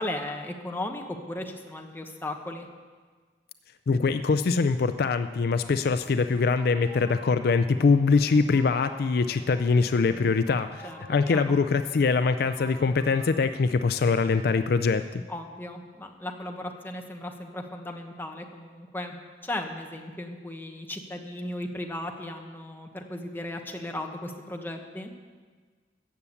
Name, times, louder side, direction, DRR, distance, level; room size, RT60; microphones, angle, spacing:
voice 1, 0.0-2.7 10.8-11.0 11.3-11.5 15.3-19.2 19.4-25.1, left 1 dB, 10° left, 3 dB, 1.1 m, -36 dB
voice 2, 3.9-15.2, left 4 dB, 60° left, 11 dB, 0.4 m, -23 dB
sound 1, 5.6-13.4, right 1 dB, 20° right, 3.4 m, -50 dB
14.0 x 7.0 x 8.2 m, 1.5 s
head